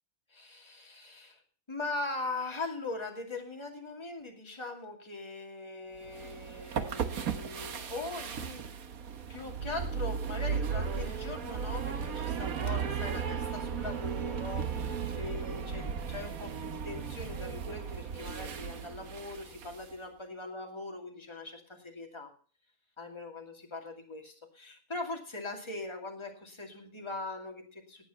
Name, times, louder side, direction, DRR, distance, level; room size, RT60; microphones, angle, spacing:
voice 1, 0.3-1.4 1.7-8.7 9.3-22.3 23.0-28.0, left 2 dB, 20° left, 2 dB, 2.5 m, -41 dB
sound 1, 6.0-19.9, right 6 dB, 85° right, 1.6 m, -36 dB
18.5 x 8.3 x 5.4 m, 0.42 s
omnidirectional pair, 1.4 m